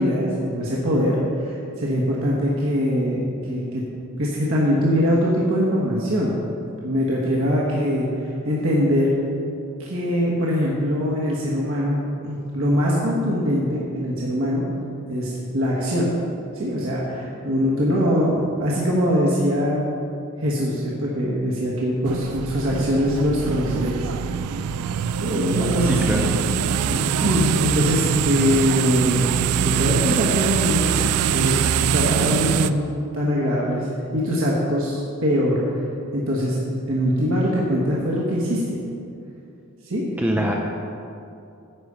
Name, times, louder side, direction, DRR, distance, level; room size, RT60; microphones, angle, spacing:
voice 1, 0.0-3.8 4.2-6.3 6.8-8.1 8.4-9.1 9.8-12.0 12.2-14.6 15.1-16.1 16.5-19.9 20.4-24.0 25.2-26.3 26.9-29.3 29.6-32.9 33.1-33.9 34.1-35.6 36.1-36.6 36.9-38.6 39.8-40.0 40.4-40.5, equal, 65° right, -5 dB, 1.4 m, -22 dB
sound 1, 22.1-32.7, right 8 dB, 90° right, 0.3 m, -23 dB
voice 2, 25.9-26.3 40.2-40.5, right 1 dB, 10° right, 0 dB, 0.5 m, -23 dB
10.5 x 5.0 x 6.8 m, 2.6 s
head